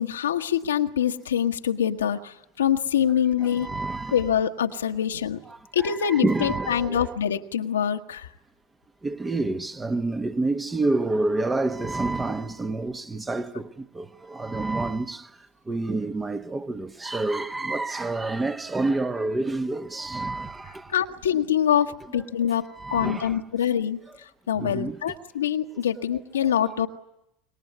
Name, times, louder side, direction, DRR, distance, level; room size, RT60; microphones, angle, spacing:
voice 1, 0.0-3.7 4.1-5.4 5.7-8.3 20.9-24.0 24.5-26.9, left 9 dB, 80° left, 1.3 m, -25 dB
voice 2, 3.4-4.2 5.5-7.1 9.0-13.7 13.9-15.2 15.7-20.8 22.8-23.4 24.6-25.0, right 2 dB, 15° right, 1.3 m, -28 dB
26.5 x 22.5 x 9.4 m
hypercardioid pair, 85°, 0 cm